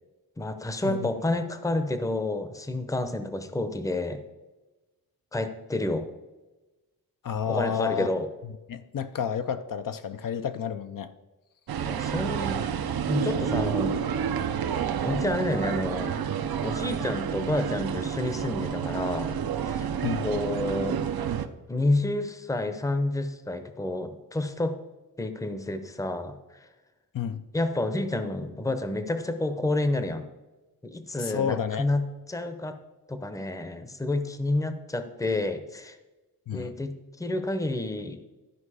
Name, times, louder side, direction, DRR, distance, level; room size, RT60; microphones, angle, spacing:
voice 1, 0.4-4.2 5.3-6.1 7.5-8.3 11.8-12.6 13.1-14.0 15.0-16.2 16.6-19.4 19.7-19.9 20.2-21.0 21.7-24.8 25.2-26.4 27.5-30.3 30.8-32.8 33.1-36.0 36.5-38.2, left 2 dB, 10° left, 0.7 m, -29 dB
voice 2, 7.2-8.1 8.7-11.1 20.0-20.3 27.1-27.4 31.2-31.8 36.5-36.7, left 8 dB, 60° left, 0.6 m, -30 dB
sound 1, 11.7-21.5, right 8 dB, 75° right, 0.7 m, -29 dB
12.0 x 5.2 x 4.8 m
wide cardioid pair, 110°, 37 cm